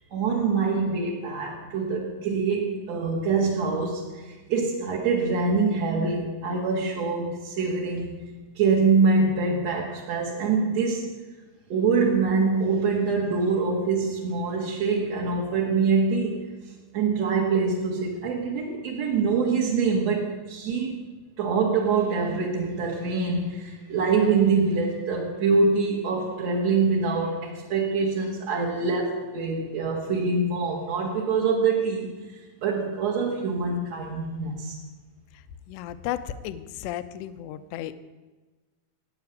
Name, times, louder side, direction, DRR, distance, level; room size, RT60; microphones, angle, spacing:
voice 1, 0.1-8.2 8.5-11.1 11.7-16.5 16.9-21.0 21.4-34.7, right 4 dB, 50° right, -4 dB, 2.4 m, -25 dB
voice 2, 35.3-37.9, left 12 dB, 80° left, 12 dB, 2.7 m, -34 dB
15.5 x 9.8 x 9.3 m, 1.3 s
omnidirectional pair, 5.5 m